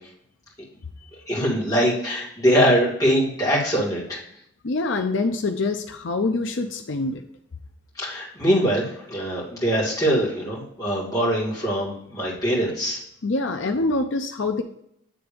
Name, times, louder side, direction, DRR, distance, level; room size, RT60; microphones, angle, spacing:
voice 1, 1.3-4.2 8.0-13.0, equal, 15° left, -5 dB, 2.2 m, -22 dB
voice 2, 4.6-7.2 13.2-14.6, left 3 dB, 75° left, 5 dB, 0.6 m, -25 dB
9.0 x 3.5 x 5.1 m, 0.72 s
head